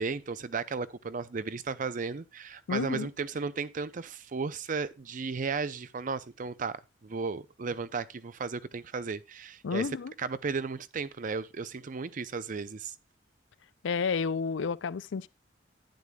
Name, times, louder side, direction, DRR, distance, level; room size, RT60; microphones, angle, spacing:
voice 1, 0.0-12.9, right 4 dB, 45° right, 0.5 m, -35 dB
voice 2, 2.7-3.1 9.6-10.1 13.8-15.3, left 5 dB, 85° left, 0.4 m, -30 dB
11.5 x 9.2 x 2.3 m
head